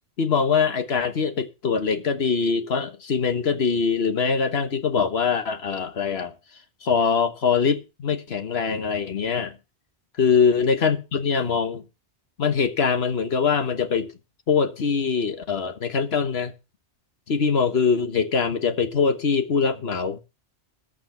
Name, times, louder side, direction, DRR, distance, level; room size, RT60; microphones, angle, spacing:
voice 1, 0.2-6.3 6.8-9.6 10.2-11.8 12.4-14.1 14.5-16.5 17.3-20.2, left 5 dB, 65° left, 1.5 m, -23 dB
14.5 x 9.3 x 4.3 m
omnidirectional pair, 1.1 m